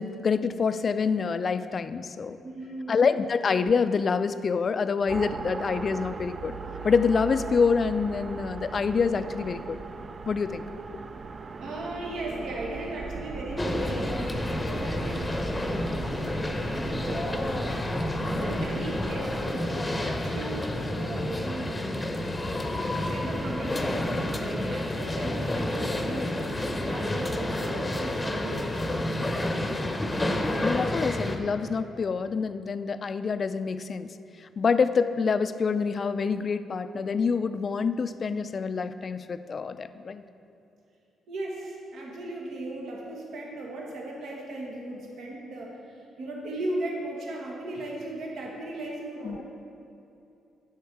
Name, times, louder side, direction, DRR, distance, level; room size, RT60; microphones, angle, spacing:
voice 1, 0.0-2.4 2.9-6.6 6.8-9.8 10.3-10.6 10.9-11.0 30.6-34.1 34.4-40.2 49.2-49.4, left 5 dB, 45° left, 12 dB, 0.3 m, -26 dB
voice 2, 2.4-3.0 11.6-17.7 18.0-22.1 22.9-29.7 41.3-49.4, right 2 dB, 75° right, -2 dB, 1.3 m, -37 dB
sound 1, 5.1-19.5, right 4 dB, 45° right, 0.4 m, -39 dB
sound 2, 13.6-31.4, left 1 dB, 15° left, 0.7 m, -30 dB
8.3 x 6.3 x 4.6 m, 2.7 s
cardioid pair, 75°, 0 cm